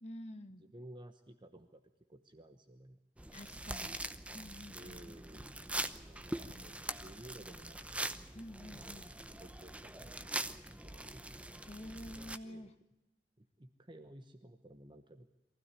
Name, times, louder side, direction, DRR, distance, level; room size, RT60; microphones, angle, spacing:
voice 1, 0.0-0.6 3.3-4.1 4.3-5.0 8.3-9.1 11.6-12.7, left 1 dB, 40° left, 7 dB, 1.5 m, -49 dB
voice 2, 0.6-1.8 2.1-3.0 3.4-3.8 4.7-5.6 6.0-8.1 8.6-11.2 12.4-12.7 13.4-15.3, right 1 dB, 25° right, 8 dB, 1.1 m, -55 dB
sound 1, 3.2-12.4, right 1 dB, 5° right, 0.8 m, -43 dB
23.5 x 16.0 x 9.8 m, 0.95 s
head